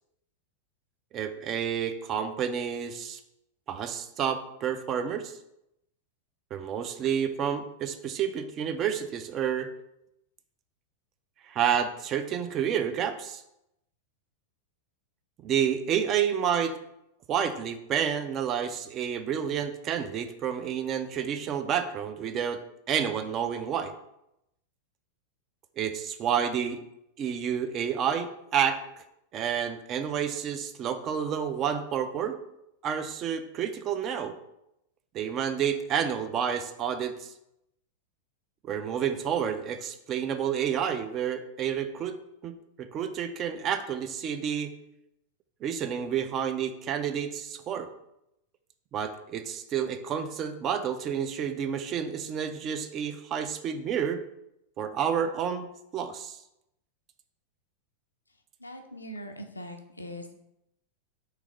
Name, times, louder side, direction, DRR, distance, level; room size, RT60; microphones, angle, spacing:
voice 1, 1.1-3.2 3.7-5.4 6.5-9.7 11.5-13.4 15.4-16.8 17.3-22.6 22.9-23.9 25.8-26.8 27.2-29.0 29.3-32.4 32.8-34.3 35.1-37.3 38.6-44.7 45.6-47.9 48.9-54.2 54.8-56.4, right 8 dB, 30° right, 9 dB, 0.4 m, -30 dB
voice 2, 58.6-60.4, equal, 80° left, 5 dB, 0.5 m, -41 dB
3.3 x 3.2 x 4.8 m, 0.83 s
figure-of-eight pair, 90°, 0 cm